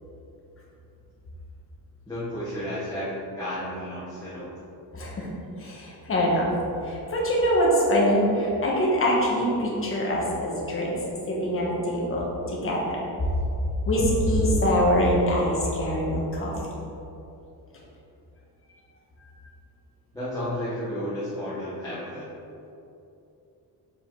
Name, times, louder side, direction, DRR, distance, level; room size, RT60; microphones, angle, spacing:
voice 1, 2.1-4.5 20.1-22.2, equal, 10° left, -13 dB, 1.4 m, -32 dB
voice 2, 4.9-5.3 5.6-6.5 6.8-10.9 11.3-13.0 13.8-16.5, equal, 35° left, -4 dB, 1.4 m, -24 dB
6.8 x 5.2 x 4.0 m, 2.8 s
wide cardioid pair, 175°, 38 cm